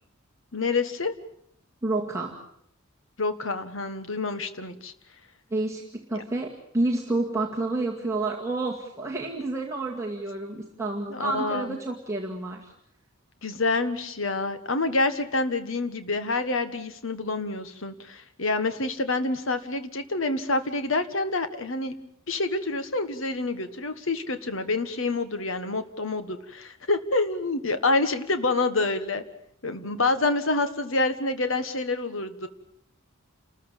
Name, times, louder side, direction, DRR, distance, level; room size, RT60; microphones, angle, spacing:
voice 1, 0.5-1.1 3.2-4.9 6.1-6.2 11.1-11.8 13.4-21.9 22.3-29.2 29.6-32.5, left 3 dB, 65° left, 10 dB, 1.6 m, -27 dB
voice 2, 1.8-2.4 5.5-12.7, right 2 dB, 15° right, -3 dB, 2.1 m, -29 dB
29.5 x 14.0 x 9.0 m, 0.71 s
head